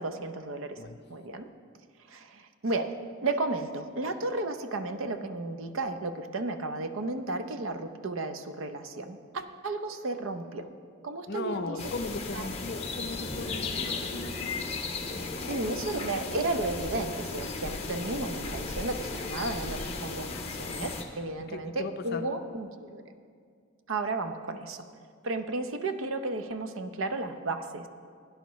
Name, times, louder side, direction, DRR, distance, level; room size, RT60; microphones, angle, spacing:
voice 1, 0.0-0.8 1.1-1.5 2.1-2.9 3.2-10.7 11.0-11.8 12.3-12.5 15.5-23.0 23.9-24.9 25.2-27.9, right 2 dB, 65° right, 8 dB, 0.6 m, -33 dB
voice 2, 11.3-14.6 15.4-16.4 21.5-22.3, left 3 dB, 50° left, 8 dB, 0.5 m, -38 dB
sound 1, 11.8-21.0, left 3 dB, 30° left, 0.9 m, -35 dB
16.5 x 10.5 x 3.1 m, 2.2 s
head